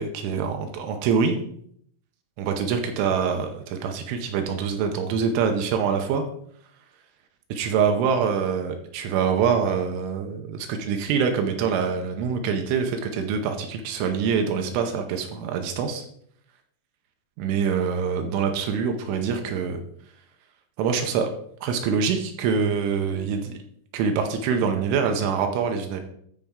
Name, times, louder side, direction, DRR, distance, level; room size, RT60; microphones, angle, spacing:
voice 1, 0.0-1.4 2.4-6.2 7.5-16.0 17.4-19.8 20.8-21.3 21.6-23.5 23.9-26.0, right 6 dB, 80° right, 5 dB, 3.1 m, -25 dB
13.0 x 4.5 x 3.7 m, 0.66 s
omnidirectional pair, 5.7 m